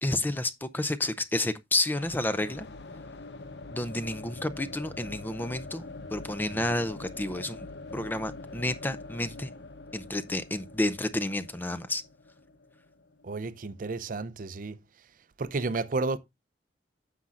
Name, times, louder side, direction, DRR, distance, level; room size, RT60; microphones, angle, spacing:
voice 1, 0.0-2.7 3.7-7.7 7.9-9.5 9.9-12.0, left 1 dB, 10° left, 0.5 m, -30 dB
sound 1, 1.9-13.7, left 2 dB, 70° left, 0.9 m, -44 dB
voice 2, 13.2-14.8 15.4-16.2, right 3 dB, 50° right, 0.5 m, -31 dB
9.7 x 7.4 x 2.5 m
head